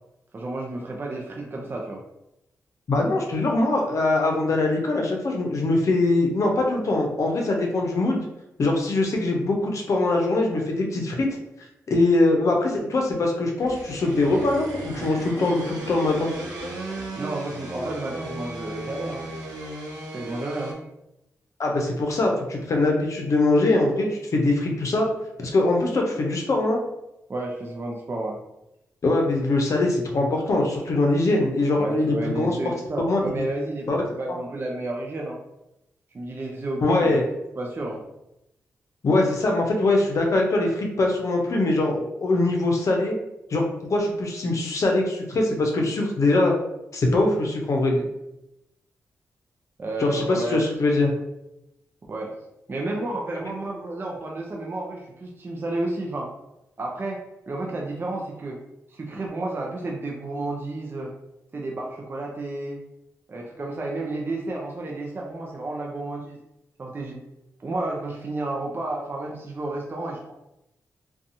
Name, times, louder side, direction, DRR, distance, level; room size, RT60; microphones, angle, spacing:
voice 1, 0.3-2.0 17.1-19.3 20.1-20.7 27.3-28.4 31.8-35.4 36.1-37.2 37.6-38.0 49.8-50.6 52.1-52.4 52.7-56.3 56.8-58.6 58.9-61.1 61.5-62.8 63.3-66.4 66.8-67.2 67.6-70.3, right 2 dB, 40° right, -1 dB, 0.5 m, -31 dB
voice 2, 2.9-8.2 8.6-11.3 11.9-16.3 21.6-25.1 25.4-26.8 29.0-33.5 33.9-34.0 36.8-37.2 39.0-43.2 43.5-43.6 43.9-46.5 46.9-48.0 50.0-51.1, left 2 dB, 60° left, 1 dB, 0.6 m, -22 dB
sound 1, 13.6-20.7, right 2 dB, 80° right, 0.6 m, -36 dB
2.6 x 2.3 x 2.6 m, 0.88 s
supercardioid pair, 50°, 6 cm